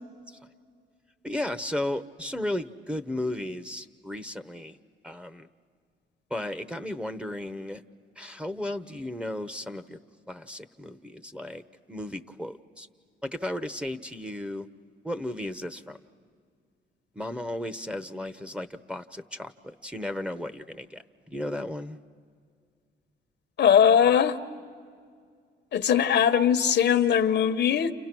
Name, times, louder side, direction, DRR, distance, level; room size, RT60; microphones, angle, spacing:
voice 1, 1.2-4.8 5.0-5.5 6.3-7.8 8.2-10.0 10.3-11.6 11.9-12.9 13.2-14.7 15.0-16.0 17.1-22.0, left 1 dB, 5° right, 6 dB, 0.9 m, -34 dB
voice 2, 23.6-24.4 25.7-27.9, left 8 dB, 60° left, 10 dB, 1.0 m, -20 dB
30.0 x 29.0 x 6.1 m, 2.1 s
cardioid pair, 90°, 20 cm